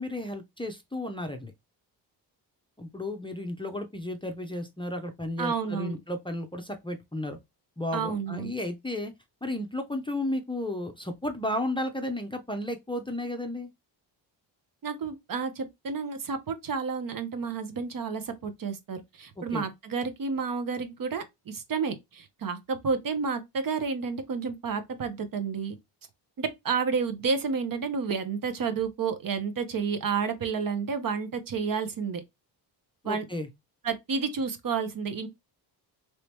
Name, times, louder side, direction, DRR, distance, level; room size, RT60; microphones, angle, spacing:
voice 1, 0.0-1.5 2.8-7.4 7.8-9.1 9.4-13.7 19.4-19.7 33.0-33.5, left 1 dB, 10° left, 0.6 m, -33 dB
voice 2, 5.4-6.0 7.9-8.5 14.8-25.8 26.4-32.2 33.0-33.2 33.8-35.3, right 5 dB, 45° right, 0.8 m, -30 dB
3.1 x 2.8 x 3.3 m
cardioid pair, 75°, 45 cm